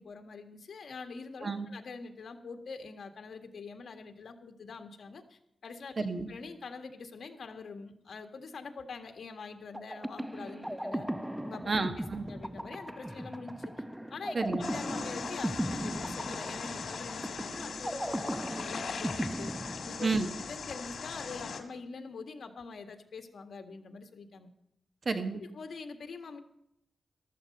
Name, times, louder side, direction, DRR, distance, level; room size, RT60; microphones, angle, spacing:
voice 1, 0.0-5.9 6.3-11.1 11.4-11.7 12.2-13.7 14.1-14.4 14.7-19.5 19.9-20.1 20.5-24.5 25.3-26.4, left 4 dB, 75° left, 6 dB, 1.7 m, -44 dB
voice 2, 6.0-6.3 11.7-12.3 14.3-14.7 20.0-20.3 25.0-25.4, right 3 dB, 45° right, 8 dB, 1.4 m, -31 dB
sound 1, 9.7-20.4, equal, 5° right, 0.6 m, -37 dB
sound 2, 14.6-21.6, left 5 dB, 90° left, 1.7 m, -40 dB
14.5 x 13.0 x 5.4 m, 0.78 s
wide cardioid pair, 125°, 0 cm